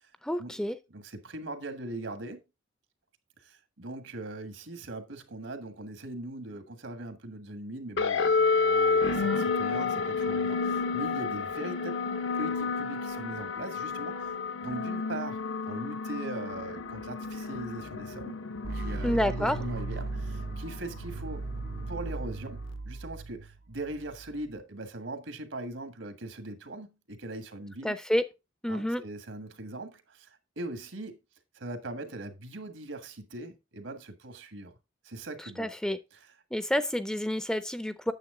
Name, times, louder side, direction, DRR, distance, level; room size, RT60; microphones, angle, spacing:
voice 1, 0.2-0.8 19.0-19.6 27.8-28.2 28.6-29.0 35.6-36.0 36.5-38.1, equal, 5° left, 0.4 m, -28 dB
voice 2, 0.9-2.4 3.4-12.0 12.4-14.3 14.6-18.4 18.7-21.4 21.9-22.6 22.8-27.9 28.7-31.2 31.5-34.7 35.0-35.7, right 2 dB, 80° right, 1.5 m, -40 dB
sound 1, 8.0-22.7, left 4 dB, 80° left, 0.9 m, -31 dB
sound 2, 18.6-24.6, right 3 dB, 50° right, 0.5 m, -38 dB
9.0 x 7.1 x 3.7 m
head